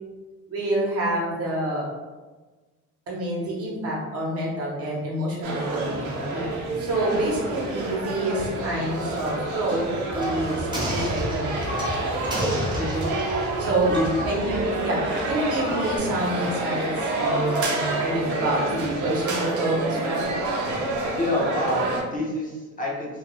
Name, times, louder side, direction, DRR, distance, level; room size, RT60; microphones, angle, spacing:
voice 1, 0.5-1.9 3.1-6.4 6.8-12.2 13.6-13.9 14.2-20.3, right 1 dB, 50° right, -3 dB, 0.9 m, -27 dB
sound 1, 5.4-22.0, right 2 dB, 75° right, 0.7 m, -28 dB
sound 2, 5.9-16.0, equal, 15° right, 0.6 m, -34 dB
voice 2, 12.8-13.2 13.9-14.3 21.2-23.2, left 1 dB, 25° left, -4 dB, 0.6 m, -27 dB
2.3 x 2.3 x 3.0 m, 1.3 s
cardioid pair, 110°, 31 cm